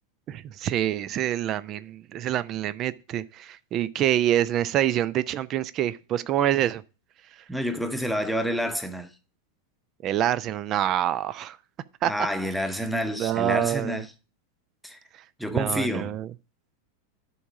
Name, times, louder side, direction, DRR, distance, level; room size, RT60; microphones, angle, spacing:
voice 1, 0.3-6.8 10.0-11.6 12.0-12.1 13.2-14.0 15.5-16.3, right 12 dB, 35° right, 0.5 m, -26 dB
voice 2, 7.5-9.1 12.0-14.1 14.8-15.0 15.4-16.2, equal, ahead, 1.0 m, -28 dB
11.0 x 3.7 x 6.1 m
figure-of-eight pair, 90°, 0 cm